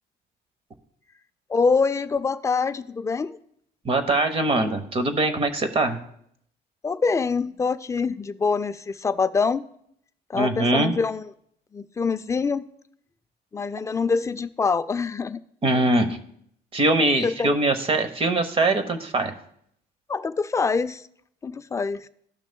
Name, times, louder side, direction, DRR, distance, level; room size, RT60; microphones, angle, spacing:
voice 1, 1.5-3.4 6.8-9.6 10.3-11.2 11.7-12.6 13.5-15.4 17.2-17.5 20.1-21.0 21.4-22.1, left 4 dB, 20° left, 12 dB, 0.3 m, -25 dB
voice 2, 3.8-6.0 10.3-11.0 15.6-16.1 16.7-19.3, right 2 dB, 35° right, 9 dB, 0.9 m, -22 dB
15.0 x 6.0 x 2.2 m, 0.69 s
cardioid pair, 110°, 17 cm